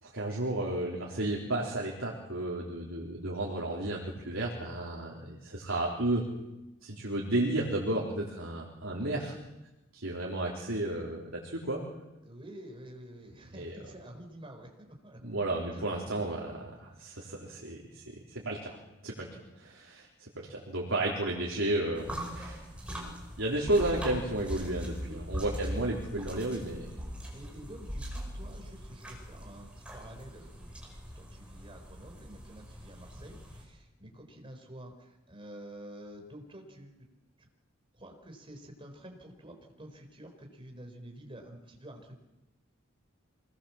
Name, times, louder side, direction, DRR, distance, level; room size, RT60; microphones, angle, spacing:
voice 1, 0.0-6.3 6.8-9.3 9.9-11.8 13.5-13.7 15.2-18.8 19.0-23.0 23.4-26.9, right 1 dB, 80° right, -2 dB, 4.1 m, -33 dB
voice 2, 12.2-15.2 15.7-15.8 25.1-25.2 25.5-25.6 27.3-30.7 31.2-37.1 37.4-37.5 37.9-42.2, right 1 dB, 25° right, 3 dB, 4.4 m, -49 dB
sound 1, 21.9-33.6, equal, 5° right, 5.8 m, -41 dB
25.0 x 20.5 x 7.4 m, 0.99 s
head